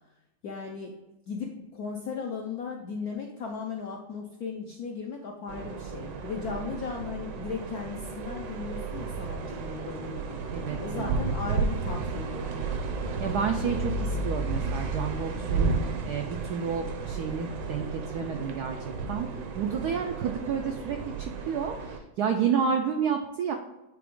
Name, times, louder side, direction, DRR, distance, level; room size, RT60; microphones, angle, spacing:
voice 1, 0.4-1.0 1.3-10.4 10.8-12.6, left 5 dB, 75° left, 1 dB, 0.8 m, -36 dB
sound 1, 5.5-22.0, right 4 dB, 70° right, 1.2 m, -33 dB
voice 2, 10.5-11.3 13.2-15.7 16.0-18.8 19.1-19.3 19.6-23.5, right 7 dB, 85° right, 4 dB, 0.8 m, -30 dB
8.4 x 3.4 x 3.7 m, 0.96 s
omnidirectional pair, 2.3 m